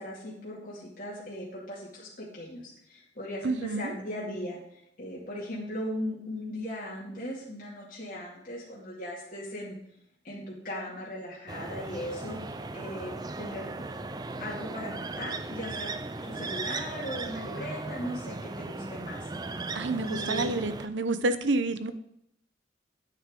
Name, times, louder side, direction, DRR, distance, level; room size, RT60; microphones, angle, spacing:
voice 1, 0.0-4.6 5.0-9.8 10.2-13.7 14.4-15.9 16.2-19.3 20.0-20.6, left 1 dB, 45° left, -6 dB, 2.3 m, -38 dB
voice 2, 3.4-3.9 19.7-21.9, right 2 dB, 75° right, 11 dB, 0.8 m, -29 dB
sound 1, 11.5-20.9, right 3 dB, 20° right, 0.4 m, -37 dB
9.4 x 9.3 x 3.7 m, 0.74 s
head